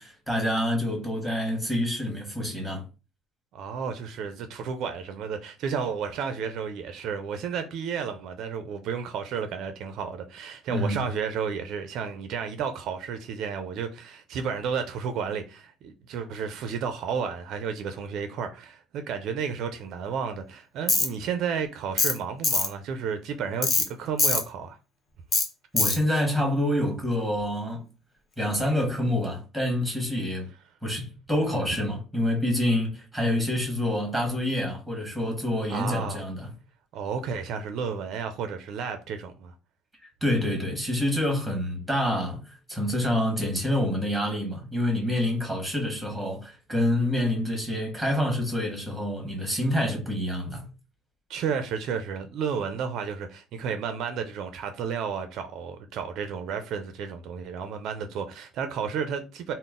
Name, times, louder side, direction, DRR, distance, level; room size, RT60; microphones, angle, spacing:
voice 1, 0.0-2.8 10.7-11.0 25.7-27.9 28.4-30.5 30.8-36.5 40.2-42.4 42.7-50.7, left 1 dB, ahead, 1.2 m, -27 dB
voice 2, 3.5-24.8 35.7-36.2 36.9-39.5 51.3-59.5, right 6 dB, 55° right, 0.4 m, -32 dB
Tools, 20.9-21.1 22.0-22.2 22.4-22.7 23.6-23.9 24.2-24.4 25.3-25.5 25.8-26.0, left 4 dB, 30° left, 0.7 m, -22 dB
3.8 x 2.0 x 3.6 m
cardioid pair, 165°, 0 cm